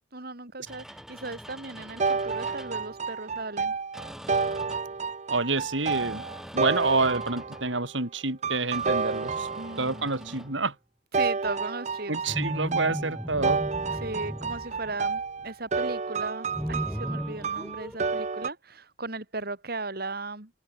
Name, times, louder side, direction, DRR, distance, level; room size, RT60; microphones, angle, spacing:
voice 1, 0.1-3.7 9.6-10.4 11.1-12.1 13.9-20.5, right 3 dB, 55° right, 3.1 m, -37 dB
sound 1, 0.7-2.9 3.9-5.0 5.8-7.7 8.7-10.6 12.2-15.4 16.5-18.0, equal, ahead, 5.2 m, -38 dB
sound 2, 2.0-7.8 8.4-10.1 11.1-18.5, right 4 dB, 40° right, 0.6 m, -30 dB
voice 2, 5.3-6.2 6.5-9.5 9.8-10.7 12.1-13.6, right 3 dB, 80° right, 4.9 m, -28 dB
open air
head